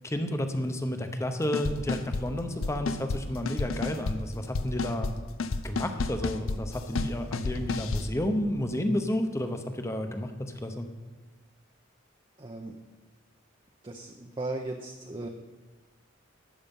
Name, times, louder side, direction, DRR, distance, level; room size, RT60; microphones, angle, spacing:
voice 1, 0.0-5.1 5.6-10.3 10.6-10.9, left 1 dB, 15° left, 6 dB, 0.9 m, -31 dB
sound 1, 1.5-2.2 2.6-3.2 3.5-4.2 4.5-5.1 5.4-8.1, left 3 dB, 90° left, 0.7 m, -30 dB
voice 2, 12.4-12.8 13.8-15.3, right 2 dB, 25° right, 2 dB, 0.6 m, -37 dB
12.5 x 8.6 x 5.4 m, 1.3 s
head